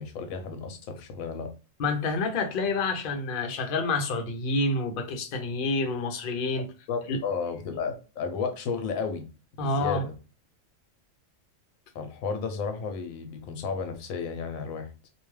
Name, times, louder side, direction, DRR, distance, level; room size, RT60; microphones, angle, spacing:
voice 1, 0.0-1.5 6.9-9.2 9.6-10.1 11.9-14.9, left 5 dB, 90° left, 1.0 m, -33 dB
voice 2, 1.8-6.7 7.1-7.2 9.6-10.0, left 3 dB, 55° left, 0.7 m, -28 dB
2.5 x 2.2 x 3.1 m
omnidirectional pair, 1.4 m